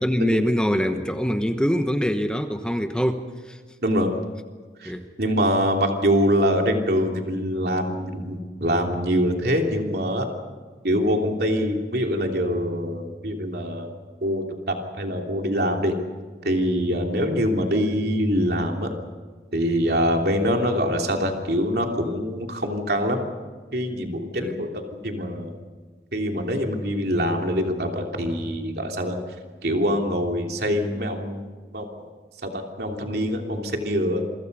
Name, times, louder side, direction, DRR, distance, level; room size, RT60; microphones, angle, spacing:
voice 1, 0.0-3.6 4.8-5.1 16.9-17.0 24.4-24.6, equal, 5° left, 6 dB, 1.1 m, -24 dB
voice 2, 3.8-4.1 4.8-4.9 5.2-10.3 10.8-13.9 14.2-15.9 16.4-18.9 19.5-23.2 23.7-25.5 26.1-29.2 29.6-31.4 31.7-31.9 32.4-34.2, equal, 65° right, 2 dB, 3.1 m, -24 dB
28.0 x 24.0 x 5.5 m, 1.5 s
head